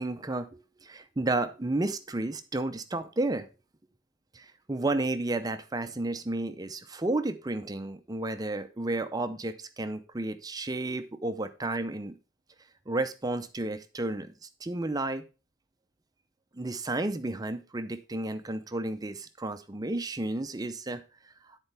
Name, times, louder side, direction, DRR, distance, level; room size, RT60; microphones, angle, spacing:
voice 1, 0.0-3.5 4.3-12.1 12.9-15.2 16.5-21.0 21.5-21.6, right 2 dB, 20° right, 9 dB, 0.5 m, -32 dB
10.0 x 4.4 x 5.5 m, 0.33 s
head